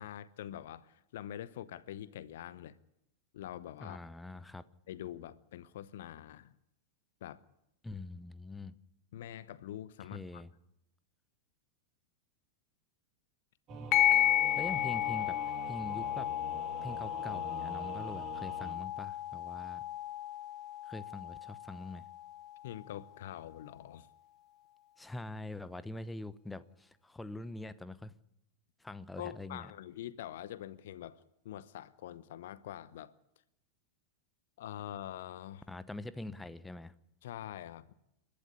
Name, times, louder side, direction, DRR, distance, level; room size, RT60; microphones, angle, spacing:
voice 1, 0.0-2.8 3.3-4.1 4.9-6.5 7.2-7.4 9.1-10.4 22.6-24.1 29.2-33.1 34.6-35.6 37.2-37.9, left 11 dB, 55° left, 0.8 m, -45 dB
voice 2, 3.8-4.6 7.8-8.8 10.1-10.5 13.7-14.0 14.6-16.3 16.8-19.8 20.8-22.1 25.0-28.1 28.8-29.7 35.7-36.9, left 2 dB, 5° left, 0.9 m, -44 dB
Singing / Musical instrument, 13.7-18.7, right 6 dB, 35° right, 3.2 m, -46 dB
sound 1, 13.9-22.9, left 13 dB, 35° left, 1.0 m, -33 dB
29.5 x 12.0 x 9.8 m
figure-of-eight pair, 90°, 0 cm